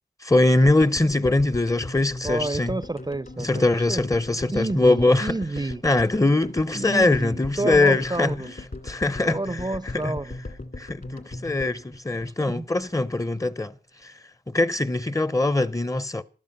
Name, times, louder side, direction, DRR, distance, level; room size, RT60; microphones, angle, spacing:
voice 1, 0.2-2.7 3.4-5.4 5.8-8.4 8.8-9.4 10.0-10.2 10.8-13.7 14.0-14.1 14.5-16.2, left 2 dB, 20° left, 0.8 m, -22 dB
sound 1, 0.7-12.9 13.1-13.2 13.4-13.5, left 2 dB, 55° left, 2.6 m, -38 dB
voice 2, 2.2-4.0 4.5-5.8 6.7-8.5 9.2-10.4 12.2-12.7, right 2 dB, 20° right, 0.6 m, -30 dB
15.0 x 12.0 x 5.4 m
cardioid pair, 45°, 18 cm